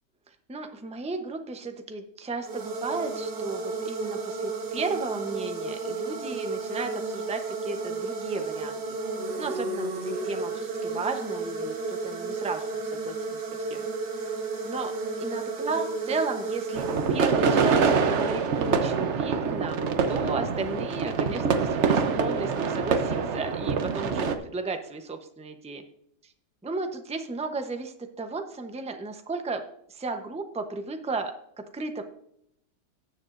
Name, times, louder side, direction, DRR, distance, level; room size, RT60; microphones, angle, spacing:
voice 1, 0.5-8.8 9.4-13.8 14.6-19.8 20.1-25.8 26.2-26.3 26.6-29.6 29.9-31.3 31.7-32.0, right 3 dB, 5° right, 6 dB, 0.5 m, -34 dB
sound 1, 2.4-17.6, right 3 dB, 70° right, 2.0 m, -33 dB
sound 2, 16.7-24.4, right 5 dB, 55° right, 0.9 m, -25 dB
17.0 x 7.0 x 2.6 m, 0.73 s
omnidirectional pair, 1.8 m